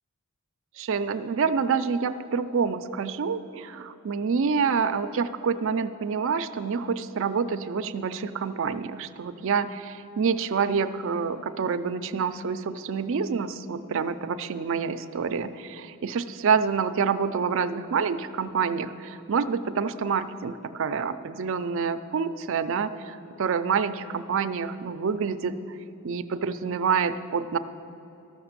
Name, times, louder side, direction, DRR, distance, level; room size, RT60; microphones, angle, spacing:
voice 1, 0.8-25.8 26.0-27.6, right 6 dB, 60° right, 10 dB, 0.4 m, -27 dB
13.0 x 5.9 x 7.2 m, 2.9 s
head